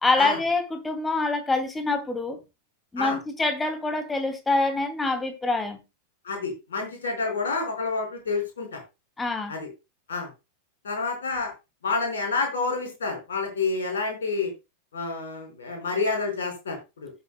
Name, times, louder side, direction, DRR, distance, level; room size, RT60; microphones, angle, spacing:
voice 1, 0.0-2.4 2.9-5.8 9.2-9.5, left 3 dB, 10° left, 2.3 m, -25 dB
voice 2, 6.2-8.8 9.5-9.7 10.1-10.3 10.8-11.5 11.8-14.5 14.9-17.1, left 4 dB, 65° left, 4.8 m, -28 dB
16.0 x 7.8 x 2.2 m
figure-of-eight pair, 90°, 0 cm